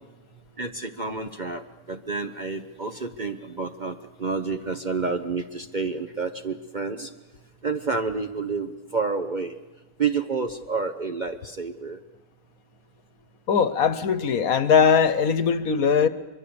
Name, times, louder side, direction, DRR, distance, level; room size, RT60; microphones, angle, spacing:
voice 1, 0.6-7.1 7.6-9.5 10.0-12.0, right 4 dB, 40° right, 7 dB, 0.8 m, -29 dB
voice 2, 13.5-16.1, left 6 dB, 65° left, 13 dB, 1.4 m, -20 dB
23.5 x 23.0 x 7.0 m, 1.1 s
omnidirectional pair, 1.6 m